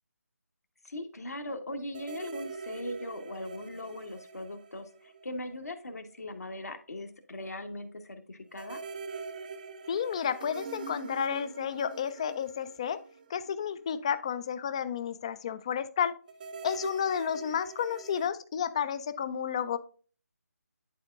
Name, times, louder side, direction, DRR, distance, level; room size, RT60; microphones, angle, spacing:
voice 1, 0.8-8.8, left 1 dB, 65° left, 5 dB, 1.3 m, -40 dB
sound 1, 1.9-5.7 6.0-6.1 8.5-13.9 16.3-18.3, right 5 dB, 30° right, 0.5 m, -44 dB
voice 2, 9.9-13.0 13.3-16.1 16.6-19.8, left 8 dB, 20° left, 14 dB, 0.4 m, -31 dB
11.0 x 4.3 x 2.4 m, 0.40 s
figure-of-eight pair, 155°, 9 cm